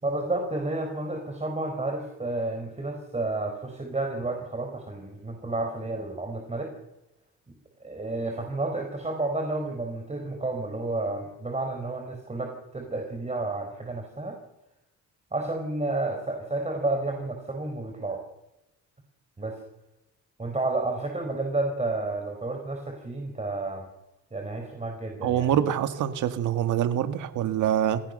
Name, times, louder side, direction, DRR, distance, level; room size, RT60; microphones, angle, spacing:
voice 1, 0.0-6.7 7.5-14.4 15.3-18.2 19.4-19.6 20.4-23.9 24.3-25.5, right 2 dB, 20° right, 3 dB, 4.6 m, -31 dB
voice 2, 25.2-28.0, right 10 dB, 80° right, 9 dB, 2.0 m, -25 dB
26.5 x 17.0 x 6.6 m, 0.93 s
cardioid pair, 90°, 30 cm